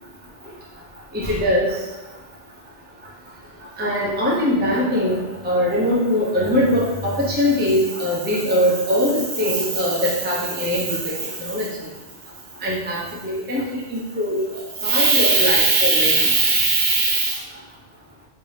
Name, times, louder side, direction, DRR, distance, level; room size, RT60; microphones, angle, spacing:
voice 1, 1.1-1.7 3.8-11.1 11.4-11.7 12.6-13.6 13.9-14.4 14.8-17.3, right 1 dB, 10° right, -6 dB, 0.6 m, -20 dB
3.3 x 3.3 x 2.8 m, 1.1 s
omnidirectional pair, 1.1 m